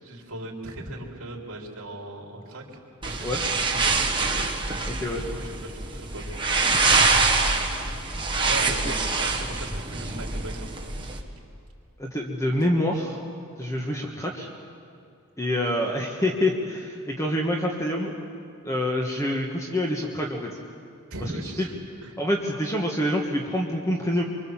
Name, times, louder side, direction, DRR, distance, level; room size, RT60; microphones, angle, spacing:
voice 1, 0.0-4.4 5.3-7.2 8.4-10.9 12.8-12.9 21.1-21.7 22.0-22.2, right 1 dB, 65° right, -1 dB, 3.7 m, -39 dB
sound 1, 3.0-11.2, right 3 dB, 20° right, 1.7 m, -25 dB
voice 2, 4.9-5.2 8.7-8.9 12.0-13.2 13.6-14.5 15.4-18.1 18.6-20.6 21.6-21.7 22.2-24.2, left 1 dB, 15° left, 0 dB, 1.6 m, -26 dB
25.0 x 24.5 x 7.4 m, 2.4 s
head